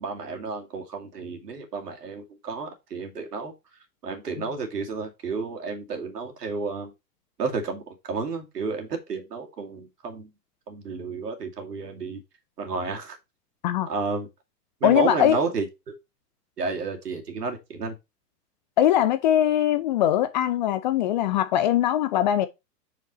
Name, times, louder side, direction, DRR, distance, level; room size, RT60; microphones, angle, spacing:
voice 1, 0.0-3.5 4.0-6.9 7.4-10.3 10.7-12.2 12.6-13.2 13.9-14.3 14.8-15.9 16.6-17.9, right 4 dB, 75° right, 2.4 m, -31 dB
voice 2, 14.8-15.4 18.8-22.5, left 11 dB, 30° left, 0.4 m, -21 dB
6.0 x 5.2 x 4.0 m
figure-of-eight pair, 105°, 48 cm